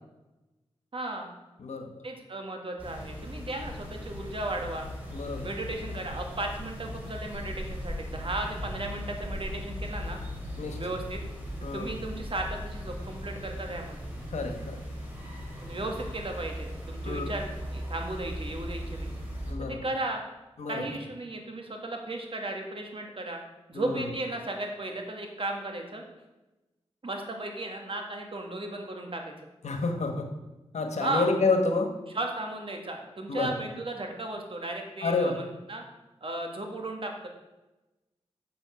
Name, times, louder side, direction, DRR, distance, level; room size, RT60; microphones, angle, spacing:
voice 1, 0.9-1.3 2.0-4.9 5.4-10.2 10.8-11.2 11.7-14.0 15.6-19.1 19.7-20.2 20.7-23.4 23.7-26.0 27.0-29.3 31.0-31.3 32.1-35.8 36.2-37.3, right 2 dB, 50° right, 2 dB, 1.9 m, -35 dB
sound 1, 2.8-19.5, equal, 15° right, 3.8 m, -38 dB
voice 2, 5.1-5.5 10.6-10.8 11.6-11.9 14.3-14.8 17.0-17.2 19.5-19.8 20.6-20.8 23.7-24.0 29.6-30.3 30.7-31.9 33.3-33.5 35.0-35.4, left 3 dB, 85° left, 4 dB, 1.3 m, -29 dB
7.4 x 7.2 x 5.8 m, 1.0 s
cardioid pair, 55°, 11 cm